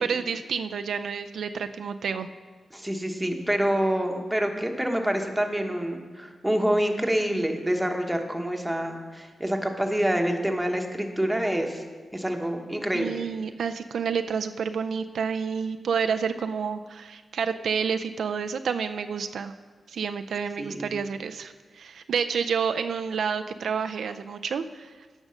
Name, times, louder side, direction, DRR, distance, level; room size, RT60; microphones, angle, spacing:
voice 1, 0.0-2.3 12.9-19.5 19.9-24.9, right 6 dB, 80° right, 8 dB, 0.4 m, -29 dB
voice 2, 2.7-11.8 12.1-13.2 20.6-21.0, equal, 5° right, 3 dB, 1.2 m, -27 dB
9.9 x 6.1 x 6.4 m, 1.4 s
cardioid pair, 75°, 0 cm